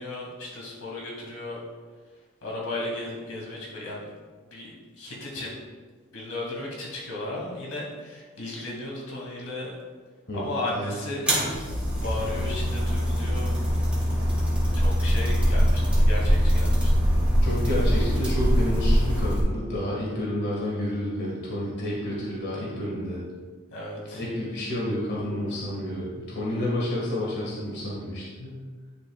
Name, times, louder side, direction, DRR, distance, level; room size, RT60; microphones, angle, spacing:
voice 1, 0.0-1.6 2.4-4.0 4.5-4.7 5.0-5.6 6.1-9.7 10.3-13.6 14.7-17.0 23.7-24.2, left 2 dB, 85° left, -4 dB, 2.3 m, -35 dB
voice 2, 10.3-11.0 17.4-23.2 24.1-28.6, left 1 dB, 55° left, -5 dB, 1.8 m, -30 dB
sound 1, 11.3-19.4, equal, 5° right, 2.3 m, -23 dB
10.5 x 6.8 x 2.4 m, 1.5 s
head